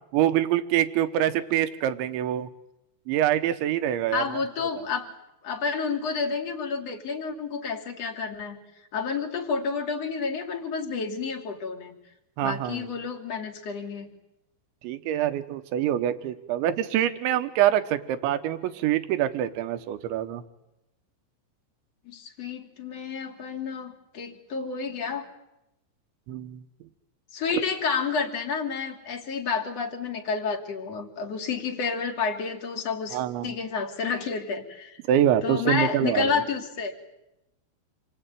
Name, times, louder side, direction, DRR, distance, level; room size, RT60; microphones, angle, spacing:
voice 1, 0.1-2.5 3.1-4.4 12.4-12.9 14.8-20.4 26.3-26.6 33.1-33.5 35.1-36.3, right 11 dB, 70° right, 10 dB, 3.4 m, -25 dB
voice 2, 4.1-5.1 5.4-8.6 8.9-12.0 12.4-14.1 22.0-25.3 27.3-35.0 35.4-36.9, left 5 dB, 40° left, 3 dB, 3.1 m, -30 dB
28.0 x 22.0 x 9.2 m, 0.88 s
omnidirectional pair, 5.8 m